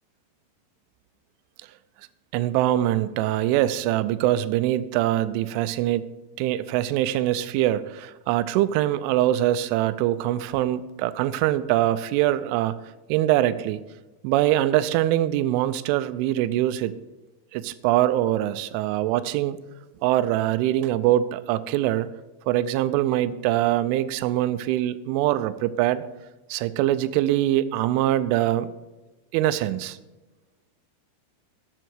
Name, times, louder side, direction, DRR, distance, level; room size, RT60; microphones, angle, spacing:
voice 1, 2.3-6.1 6.4-12.8 13.1-13.8 14.2-16.9 17.5-19.6 20.0-22.1 22.5-26.0 26.5-28.7 29.3-30.0, right 13 dB, 85° right, 14 dB, 3.0 m, -23 dB
12.5 x 7.1 x 4.6 m, 1.1 s
omnidirectional pair, 5.6 m